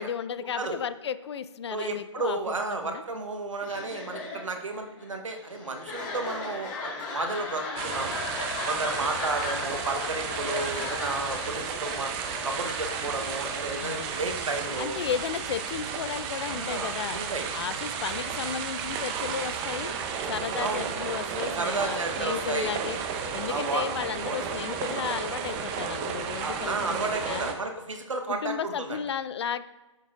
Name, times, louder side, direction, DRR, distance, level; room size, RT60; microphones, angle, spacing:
voice 1, 0.0-3.0 13.8-14.1 14.8-17.2 17.5-19.9 20.3-23.0 23.3-27.6 28.3-29.6, left 8 dB, 60° left, 14 dB, 0.4 m, -34 dB
voice 2, 1.7-8.1 8.7-12.1 12.4-14.9 16.5-17.4 20.6-20.9 21.6-22.7 23.5-23.9 24.2-24.5 26.4-29.0, right 3 dB, 80° right, 4 dB, 1.0 m, -32 dB
sound 1, 3.6-15.3, left 3 dB, 40° left, 1.7 m, -37 dB
sound 2, 7.8-27.5, right 6 dB, 25° right, 0.6 m, -33 dB
7.1 x 6.6 x 2.4 m, 1.1 s
figure-of-eight pair, 135°, 16 cm